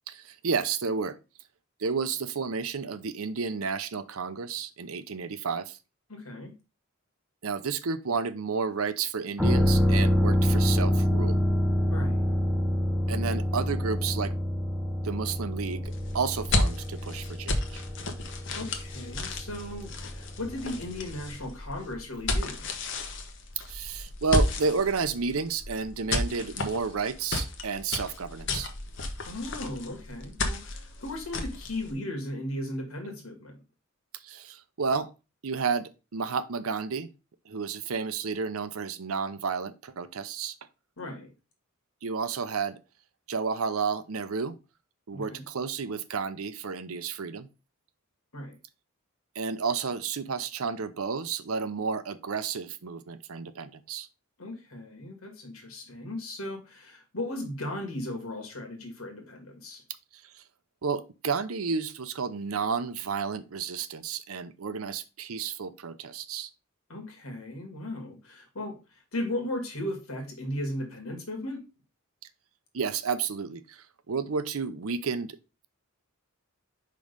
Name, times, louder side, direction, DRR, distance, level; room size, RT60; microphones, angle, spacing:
voice 1, 0.1-1.2 1.8-5.8 7.4-11.4 13.1-14.3 15.0-15.8 16.1-17.8 23.7-28.7 34.2-35.1 35.4-37.1 37.5-40.6 42.0-42.8 43.3-44.5 45.1-47.5 49.4-54.1 60.1-60.4 60.8-66.5 72.7-75.4, right 5 dB, 80° right, 0.7 m, -31 dB
voice 2, 6.1-6.5 11.9-12.2 18.5-22.6 29.2-33.6 41.0-41.3 45.1-45.4 48.3-48.5 54.4-59.8 66.9-71.6, left 1 dB, 80° left, 2.0 m, -36 dB
sound 1, 9.4-21.0 21.3-21.4, equal, ahead, 0.7 m, -27 dB
sound 2, 15.8-31.9, left 2 dB, 55° left, 1.0 m, -33 dB
5.2 x 3.8 x 5.2 m
head